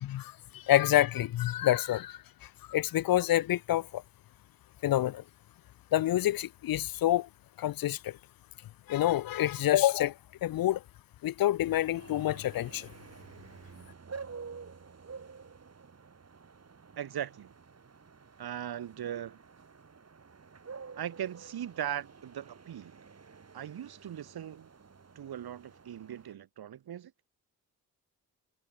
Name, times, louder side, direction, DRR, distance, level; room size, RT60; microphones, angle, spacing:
voice 1, 0.0-2.2 2.7-4.0 4.8-5.2 5.9-7.3 7.6-8.1 8.9-10.1 10.4-10.8 11.2-12.9, left 13 dB, 60° left, 0.6 m, -27 dB
sound 1, 11.9-26.3, right 5 dB, 40° right, 2.4 m, -50 dB
voice 2, 17.0-17.5 18.4-19.4 21.0-23.0 23.5-24.7 25.2-27.1, right 10 dB, 65° right, 1.8 m, -39 dB
supercardioid pair, 50°, 40 cm